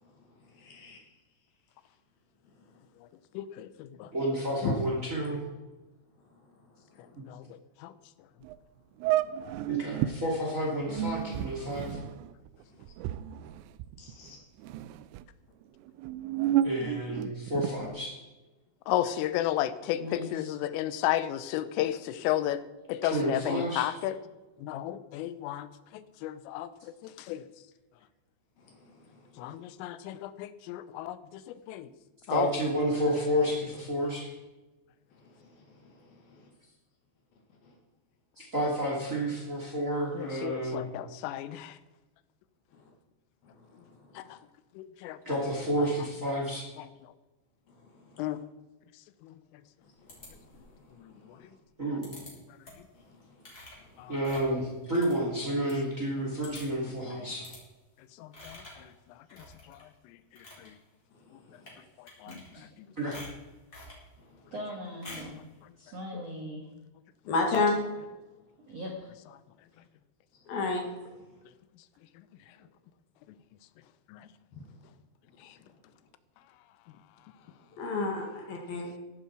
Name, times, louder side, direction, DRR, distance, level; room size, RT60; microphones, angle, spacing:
voice 1, 0.6-1.0 4.6-4.7 14.0-14.4 67.2-67.8 70.5-70.8 74.5-74.6 77.8-78.9, left 3 dB, 60° left, 2 dB, 3.2 m, -30 dB
voice 2, 3.4-3.7 4.0-4.1 7.3-7.4 7.8-7.9 18.9-22.6 22.9-24.2 24.7-25.7 26.2-26.7 27.0-27.4 29.4-31.2 31.7-31.9 32.3-32.5 40.2-41.7 44.2-44.3 44.8-45.2 48.2-48.4 58.2-58.6 62.2-62.4 74.1-74.2, left 13 dB, 90° left, 14 dB, 3.3 m, -32 dB
voice 3, 4.1-5.4 9.7-12.0 16.6-18.2 23.0-23.9 32.3-34.3 38.4-40.8 45.2-46.6 51.8-52.2 54.1-57.5 63.0-63.2, equal, 20° right, -2 dB, 2.3 m, -30 dB
sound 1, 8.4-8.6 9.0-10.2 10.8-14.3 14.6-15.3 15.9-17.9, right 12 dB, 85° right, 3.1 m, -31 dB
voice 4, 20.0-20.6 62.3-62.6 64.5-65.4 65.8-66.7 68.7-69.1, left 1 dB, 65° right, 1 dB, 1.5 m, -40 dB
sound 2, 50.1-50.8 52.0-52.3 52.6-52.9 53.4-55.8 56.1-56.2 56.4-56.9 57.4-57.6 58.3-58.9 59.3-59.8 60.2-60.7 61.5-61.8 62.1-62.8 63.1-64.0 65.0-65.4, left 2 dB, 20° left, 4.2 m, -48 dB
15.0 x 11.5 x 4.8 m, 1.1 s
omnidirectional pair, 5.7 m